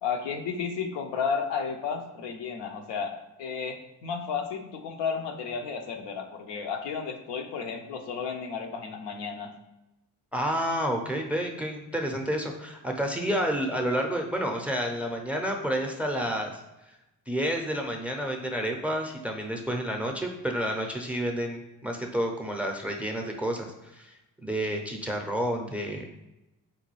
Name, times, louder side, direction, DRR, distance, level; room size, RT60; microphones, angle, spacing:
voice 1, 0.0-9.5, left 6 dB, 75° left, 4 dB, 0.6 m, -33 dB
voice 2, 10.3-16.6 17.3-24.1 24.4-26.1, equal, 5° right, 3 dB, 0.5 m, -30 dB
3.9 x 2.2 x 3.0 m, 0.96 s
supercardioid pair, 55°, 42 cm